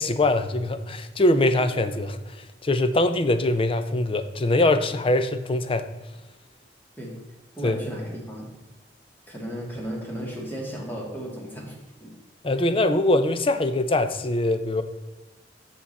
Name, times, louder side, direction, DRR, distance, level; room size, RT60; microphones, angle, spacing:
voice 1, 0.0-5.9 7.6-7.8 12.4-14.8, left 2 dB, 30° left, 10 dB, 0.5 m, -23 dB
voice 2, 7.6-8.5 9.3-11.7 12.0-12.1, equal, 10° left, -2 dB, 2.2 m, -34 dB
7.4 x 7.0 x 4.2 m, 1.1 s
head